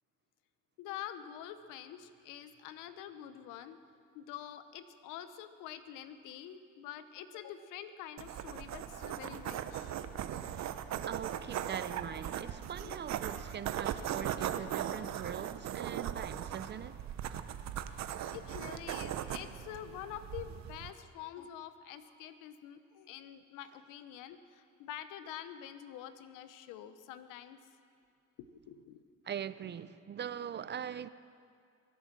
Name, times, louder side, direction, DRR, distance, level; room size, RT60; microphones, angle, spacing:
voice 1, 0.8-3.8 4.1-9.9 12.8-13.0 17.9-27.6 28.4-29.0 30.9-31.0, left 10 dB, 80° left, 1.0 m, -47 dB
sound 1, 8.2-20.9, right 10 dB, 60° right, 0.9 m, -39 dB
voice 2, 11.0-17.1 29.2-31.1, right 9 dB, 35° right, 0.5 m, -42 dB
24.0 x 8.5 x 6.1 m
supercardioid pair, 85°, 31 cm